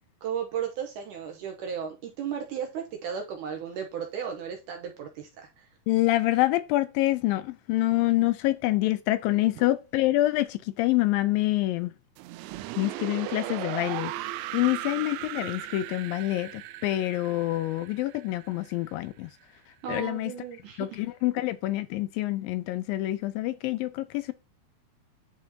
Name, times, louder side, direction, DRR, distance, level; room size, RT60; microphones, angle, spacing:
voice 1, 0.2-5.5 19.8-21.0, right 8 dB, 75° right, 2.1 m, -35 dB
voice 2, 5.9-11.9 12.8-14.1 14.5-19.3 19.9-20.3 20.8-24.3, left 17 dB, 80° left, 2.2 m, -26 dB
sound 1, 12.2-19.1, right 15 dB, 90° right, 2.4 m, -37 dB
10.5 x 4.8 x 2.8 m
omnidirectional pair, 4.3 m